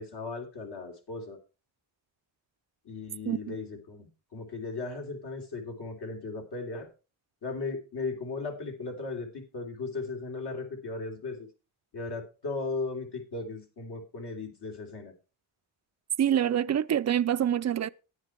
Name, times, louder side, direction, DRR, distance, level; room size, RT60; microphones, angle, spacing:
voice 1, 0.0-1.4 2.8-6.9 7.4-11.5 11.9-15.1, left 3 dB, 60° left, 3.0 m, -37 dB
voice 2, 3.3-3.6 16.2-17.9, right 10 dB, 35° right, 0.4 m, -26 dB
10.5 x 9.6 x 4.4 m
wide cardioid pair, 135°, 46 cm